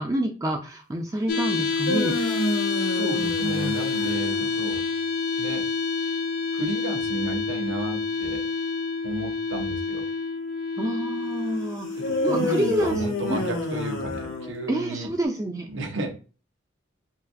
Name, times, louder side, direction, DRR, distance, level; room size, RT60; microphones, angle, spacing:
voice 1, 0.0-2.1 10.8-13.0 13.3-13.4 14.7-15.7, right 1 dB, 15° right, 3 dB, 0.4 m, -28 dB
sound 1, 1.3-15.2, left 4 dB, 50° left, 0.5 m, -29 dB
sound 2, 1.6-4.8 12.0-14.9, left 1 dB, 85° left, 1.1 m, -30 dB
voice 2, 2.7-4.8 5.4-5.7 6.5-8.5 9.0-10.0 12.0-15.1 15.7-16.1, right 2 dB, 75° right, 4 dB, 0.8 m, -32 dB
5.4 x 2.3 x 2.5 m, 0.35 s
head